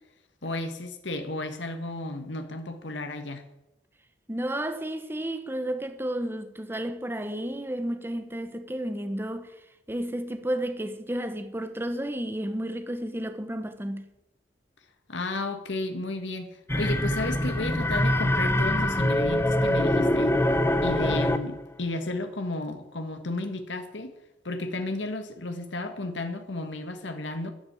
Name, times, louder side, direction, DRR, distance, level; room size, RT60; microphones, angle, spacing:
voice 1, 0.4-3.5 15.1-20.4 20.8-24.1 24.5-27.5, left 2 dB, 80° left, 1.6 m, -33 dB
voice 2, 4.3-9.5 9.9-14.1, right 1 dB, 10° right, 1.0 m, -32 dB
sound 1, 16.7-21.6, left 1 dB, 15° left, 0.9 m, -24 dB
12.0 x 10.5 x 8.3 m
head